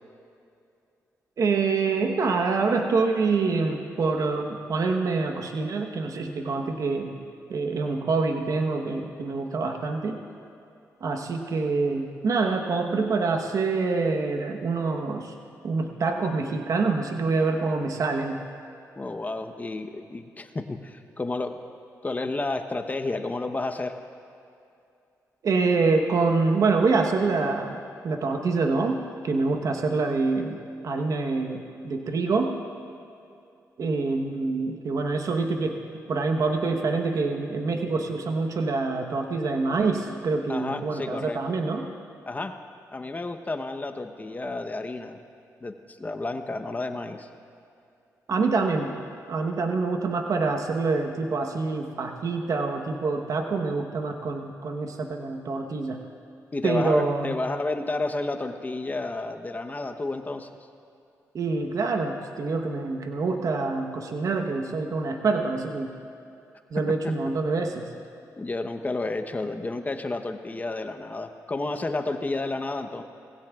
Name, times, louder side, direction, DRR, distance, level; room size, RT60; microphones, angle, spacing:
voice 1, 1.4-7.1 7.5-10.2 11.0-15.3 15.6-18.4 25.4-30.6 30.8-32.6 33.8-35.8 36.1-41.9 48.3-48.9 49.3-56.0 56.6-57.4 61.3-65.9 66.7-67.9, right 4 dB, 65° right, 3 dB, 1.1 m, -26 dB
voice 2, 19.0-21.6 22.0-24.0 40.5-41.4 42.3-42.5 42.9-45.2 45.6-47.3 56.5-60.5 68.4-73.0, left 2 dB, 25° left, 7 dB, 0.9 m, -31 dB
19.0 x 16.0 x 2.4 m, 2.6 s
cardioid pair, 70°, 6 cm